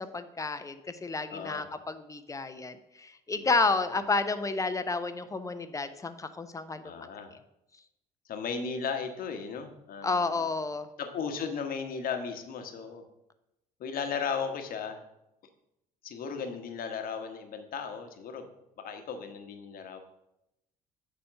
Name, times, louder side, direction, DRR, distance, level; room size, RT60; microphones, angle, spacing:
voice 1, 0.0-6.9 10.0-10.9, left 3 dB, 15° left, 10 dB, 0.8 m, -31 dB
voice 2, 1.3-1.7 3.4-3.5 6.8-7.3 8.3-10.5 11.0-13.0 13.8-15.0 16.0-18.5 18.8-20.0, left 6 dB, 50° left, 6 dB, 1.2 m, -36 dB
7.0 x 5.0 x 6.7 m, 0.88 s
figure-of-eight pair, 50°, 19 cm